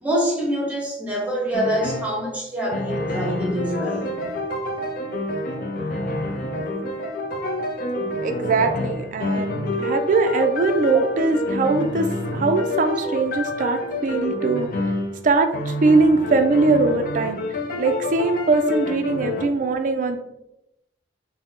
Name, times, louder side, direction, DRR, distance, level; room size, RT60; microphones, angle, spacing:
voice 1, 0.0-4.3 6.5-6.7 8.6-8.7 9.2-9.3 19.3-19.4 19.7-19.8, equal, 5° right, -2 dB, 0.9 m, -26 dB
sound 1, 1.5-2.2 2.7-15.2 15.5-19.5, left 1 dB, 50° left, 0.4 m, -28 dB
voice 2, 8.2-14.9 15.2-17.4 17.8-20.2, right 3 dB, 45° right, 6 dB, 0.3 m, -21 dB
3.7 x 2.1 x 3.6 m, 0.85 s
head